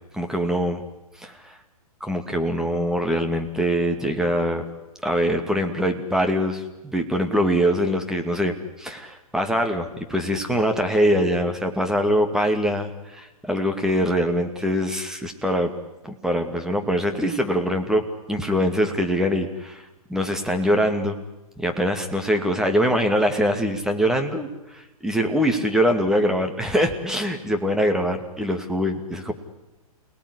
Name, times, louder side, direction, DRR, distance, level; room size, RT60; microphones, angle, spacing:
voice 1, 0.1-0.8 1.2-1.6 2.0-4.6 5.0-15.7 16.0-19.8 20.1-21.2 21.6-29.3, equal, 5° right, 4 dB, 2.4 m, -23 dB
29.0 x 19.0 x 10.0 m, 1.0 s
hypercardioid pair, 125°, 19 cm